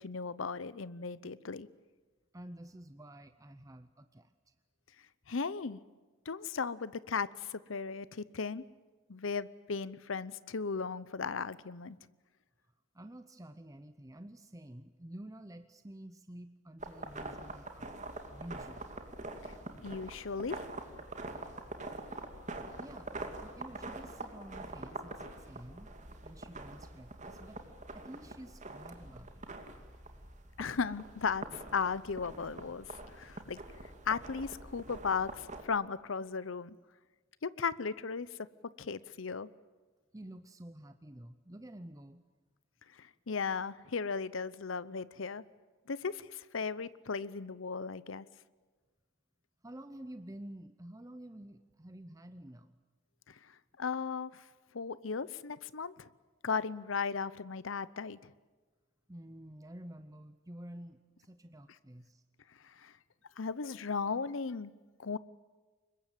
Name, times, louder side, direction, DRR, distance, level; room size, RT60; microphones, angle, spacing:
voice 1, 0.0-1.7 5.3-5.8 6.3-8.6 9.1-12.0 19.8-20.6 30.6-32.9 33.2-33.6 34.1-36.7 37.4-38.3 38.6-39.5 43.0-45.4 45.9-48.3 53.3-53.4 53.8-54.4 54.7-56.1 56.4-58.3 62.6-62.9 63.4-64.7 65.0-65.2, left 5 dB, 85° left, 17 dB, 0.8 m, -36 dB
voice 2, 2.3-4.5 12.9-18.9 22.8-25.9 26.2-27.6 27.9-29.4 40.1-42.2 49.6-52.7 59.1-62.2, right 1 dB, 15° right, 10 dB, 0.8 m, -50 dB
sound 1, 16.8-35.6, right 2 dB, 40° right, 2.7 m, -45 dB
25.5 x 22.0 x 9.1 m, 1.3 s
head